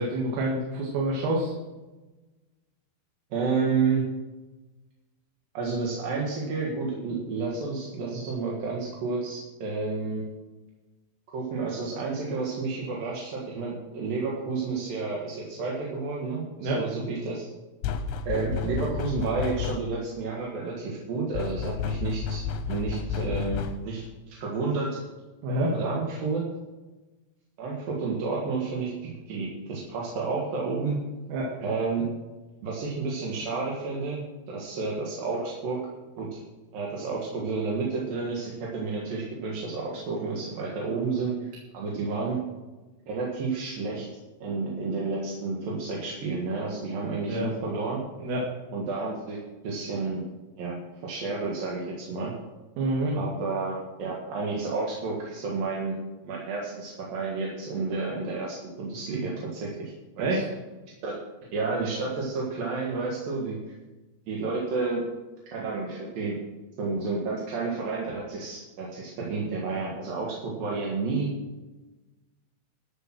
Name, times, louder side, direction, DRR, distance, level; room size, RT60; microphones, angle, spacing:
voice 1, 0.0-1.5 16.6-16.8 25.4-25.7 31.3-31.5 47.3-47.5 48.2-48.4 52.8-53.1 60.2-60.4, right 1 dB, 80° right, -3 dB, 4.5 m, -27 dB
voice 2, 3.3-4.0 5.5-10.2 11.3-17.5 18.3-25.0 25.7-26.4 27.6-31.0 31.6-32.0 32.6-34.2 34.5-35.8 36.2-36.4 36.7-41.5 41.7-42.4 43.1-44.1 44.4-48.0 48.7-49.4 49.6-50.2 50.6-50.8 51.0-52.3 53.1-56.0 56.2-59.7 60.2-60.4 61.0-61.2 61.5-63.6 64.3-65.0 65.5-66.3 66.8-71.3, right 4 dB, 55° right, -3 dB, 2.9 m, -30 dB
sound 1, 17.8-20.1 21.3-24.0, left 7 dB, 80° left, 2.9 m, -32 dB
12.5 x 8.3 x 6.0 m, 1.1 s
omnidirectional pair, 5.8 m